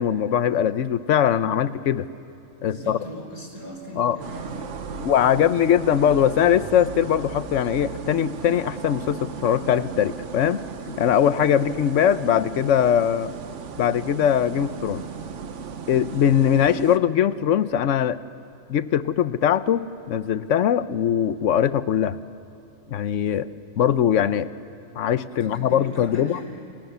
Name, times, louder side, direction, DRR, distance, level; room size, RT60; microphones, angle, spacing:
voice 1, 0.0-2.1 2.6-3.0 4.0-4.2 5.0-13.3 13.8-15.1 15.9-18.2 18.7-22.2 22.9-23.5 23.8-24.5 25.0-26.4, left 9 dB, 65° left, 14 dB, 1.1 m, -21 dB
voice 2, 2.6-5.1 25.3-26.5, equal, 85° left, 1 dB, 5.3 m, -39 dB
sound 1, 4.2-17.0, right 6 dB, 60° right, 1.3 m, -36 dB
29.5 x 28.0 x 6.9 m, 2.8 s
omnidirectional pair, 1.5 m